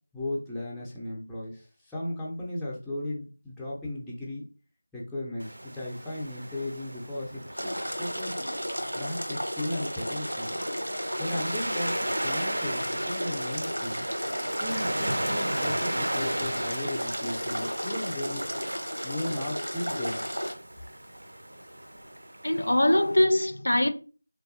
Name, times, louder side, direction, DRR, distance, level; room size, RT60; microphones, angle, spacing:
voice 1, 0.1-4.5 4.9-8.5 8.9-10.6 11.2-14.1 14.6-18.5 19.0-20.3, left 1 dB, ahead, 0.4 m, -36 dB
Waves surf, 5.4-23.2, right 1 dB, 60° right, 0.4 m, -36 dB
sound 1, 7.6-20.5, equal, 85° right, 0.8 m, -33 dB
voice 2, 22.4-23.9, left 1 dB, 65° left, 0.4 m, -22 dB
3.3 x 2.3 x 2.5 m
figure-of-eight pair, 170°, 0 cm